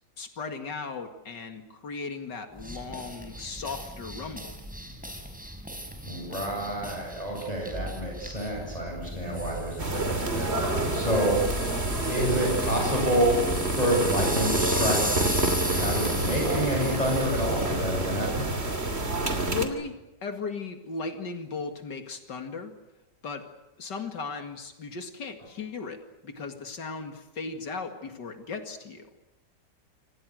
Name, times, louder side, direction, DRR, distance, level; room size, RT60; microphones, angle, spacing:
voice 1, 0.2-4.5 19.0-19.9 20.2-22.7 23.2-23.4 23.8-29.1, left 4 dB, 85° left, 6 dB, 2.8 m, -36 dB
sound 1, 2.6-18.1, equal, 5° right, 4.5 m, -35 dB
voice 2, 6.0-11.4 12.0-13.4 13.7-15.4 15.7-18.5, right 1 dB, 20° left, -1 dB, 8.1 m, -28 dB
sound 2, 9.8-19.7, right 2 dB, 35° right, 3.1 m, -28 dB
28.5 x 26.0 x 6.4 m, 0.94 s
omnidirectional pair, 1.8 m